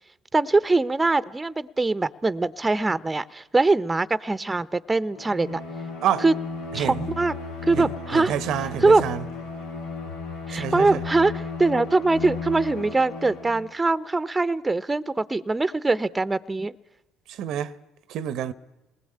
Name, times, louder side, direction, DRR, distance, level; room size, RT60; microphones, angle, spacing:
voice 1, 0.3-5.6 6.2-6.3 6.7-7.3 7.6-8.3 8.8-9.0 10.5-16.7, right 3 dB, 20° right, 0.8 m, -22 dB
Bowed string instrument, 5.1-13.7, left 4 dB, 80° left, 2.5 m, -34 dB
voice 2, 6.7-7.1 7.7-9.2 10.5-11.0 17.3-17.7 18.1-18.5, right 10 dB, 65° right, 0.8 m, -28 dB
27.5 x 20.0 x 8.8 m
hypercardioid pair, 60°, 0 cm